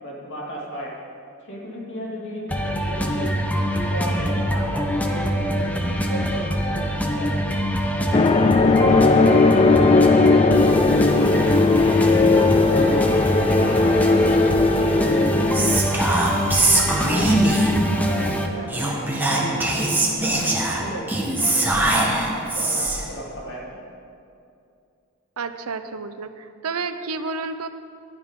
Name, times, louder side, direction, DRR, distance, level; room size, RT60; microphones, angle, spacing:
voice 1, 0.0-0.9 1.4-3.3 3.7-7.6 7.9-8.3 8.6-9.4 9.9-10.4 10.8-12.2 12.6-13.9 14.2-16.6 16.9-21.1 21.4-23.6, equal, 60° left, -3 dB, 2.6 m, -34 dB
sound 1, 2.5-18.5, equal, 5° left, 0.8 m, -24 dB
sound 2, 8.1-15.8, left 3 dB, 25° left, 0.4 m, -17 dB
Whispering, 15.5-17.8 18.7-23.1, right 2 dB, 10° right, 1.4 m, -21 dB
voice 2, 25.4-27.7, right 4 dB, 85° right, 10 dB, 0.6 m, -30 dB
15.5 x 11.0 x 3.7 m, 2.5 s
head